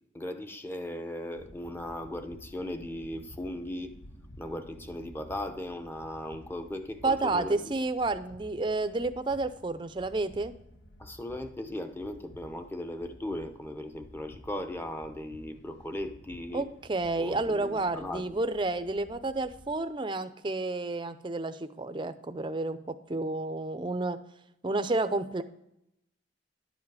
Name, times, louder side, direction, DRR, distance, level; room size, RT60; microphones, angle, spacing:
voice 1, 0.1-3.9 4.4-7.7 11.0-16.6 17.2-18.4, left 1 dB, 10° left, 7 dB, 0.7 m, -38 dB
sound 1, 1.3-19.8, left 1 dB, 85° left, 1.0 m, -53 dB
voice 2, 7.0-10.5 16.5-22.8 23.1-24.2 24.6-25.4, right 2 dB, 25° right, 11 dB, 0.5 m, -30 dB
11.0 x 7.3 x 4.8 m, 0.81 s
head